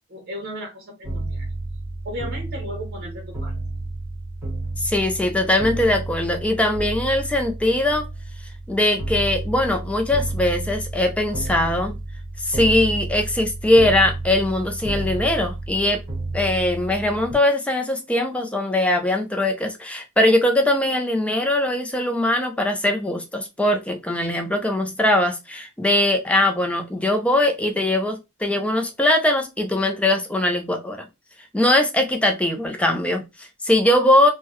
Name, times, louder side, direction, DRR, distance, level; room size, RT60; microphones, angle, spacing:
voice 1, 0.1-1.5 2.0-3.6, equal, 45° right, 0.7 m, -35 dB
sound 1, 1.0-17.3, right 2 dB, 10° right, 1.6 m, -31 dB
voice 2, 4.8-8.1 8.7-12.0 12.4-16.0 16.3-31.1 31.5-34.3, left 1 dB, 5° left, 0.4 m, -21 dB
3.6 x 2.1 x 3.0 m
head